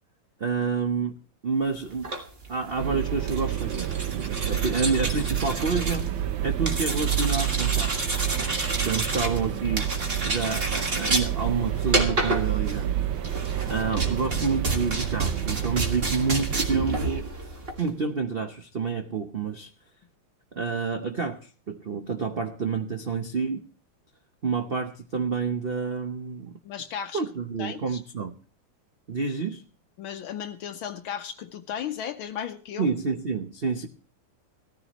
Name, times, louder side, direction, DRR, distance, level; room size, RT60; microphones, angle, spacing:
voice 1, 0.4-1.2 1.4-2.1 2.5-6.1 6.4-7.9 8.4-8.5 8.8-9.9 10.2-13.0 13.6-17.3 17.8-19.7 20.5-23.6 24.4-26.6 27.1-28.3 29.1-29.6 32.8-33.9, right 5 dB, 90° right, 5 dB, 0.5 m, -29 dB
sound 1, 1.9-17.9, right 2 dB, 30° right, 1.8 m, -30 dB
sound 2, 2.8-17.2, right 11 dB, 70° right, 1.4 m, -29 dB
voice 2, 26.6-27.2 27.6-28.0 30.0-32.9, left 8 dB, 75° left, 7 dB, 1.5 m, -35 dB
17.5 x 14.0 x 3.0 m, 0.39 s
omnidirectional pair, 2.4 m